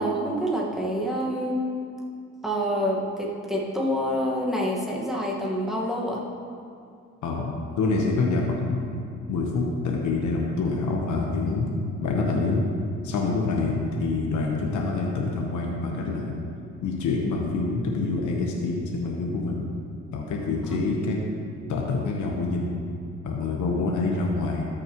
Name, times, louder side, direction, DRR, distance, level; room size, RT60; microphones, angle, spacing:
voice 1, 0.0-1.5 2.4-6.2 20.7-20.9, equal, ahead, -4 dB, 1.7 m, -27 dB
voice 2, 7.2-8.8 9.3-11.7 12.0-12.7 13.0-16.3 16.8-19.7 20.1-21.2 21.7-22.7 23.2-24.7, left 3 dB, 75° left, -1 dB, 1.2 m, -26 dB
13.5 x 6.4 x 3.1 m, 2.4 s
cardioid pair, 90°, 30 cm